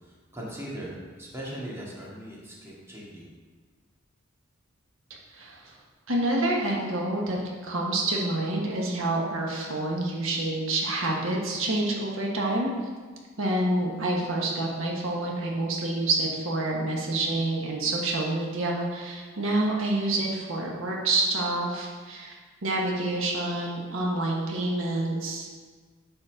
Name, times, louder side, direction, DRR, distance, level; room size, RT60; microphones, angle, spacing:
voice 1, 0.0-3.3, equal, 15° right, -5 dB, 2.1 m, -39 dB
voice 2, 5.3-5.7 6.1-12.7 13.4-22.3 22.6-25.5, right 2 dB, 85° right, -2 dB, 1.5 m, -28 dB
9.6 x 4.2 x 6.4 m, 1.5 s
head